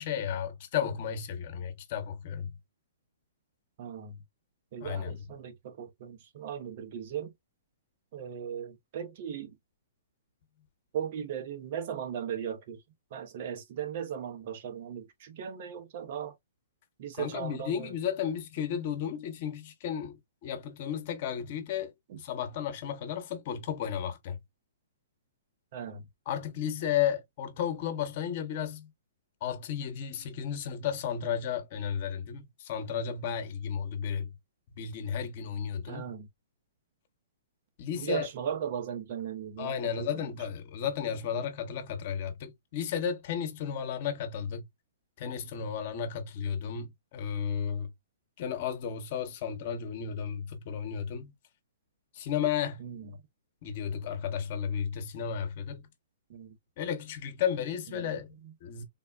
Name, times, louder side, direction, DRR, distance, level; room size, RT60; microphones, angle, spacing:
voice 1, 0.0-2.5 4.8-5.2 17.2-24.4 26.3-28.9 29.4-34.3 34.8-36.1 37.8-38.3 39.6-44.6 45.2-47.9 48.4-51.3 52.1-52.8 53.6-55.8 56.8-58.3 58.6-58.8, left 8 dB, 50° left, 0.9 m, -33 dB
voice 2, 3.8-4.2 4.7-7.3 8.1-9.6 10.9-12.8 13.1-16.3 17.0-17.9 22.1-22.2 25.7-26.0 35.9-36.3 38.0-40.2 52.8-53.1 56.3-56.6 58.0-58.5, right 8 dB, 55° right, 0.8 m, -37 dB
3.8 x 2.1 x 2.3 m
hypercardioid pair, 130°, 0 cm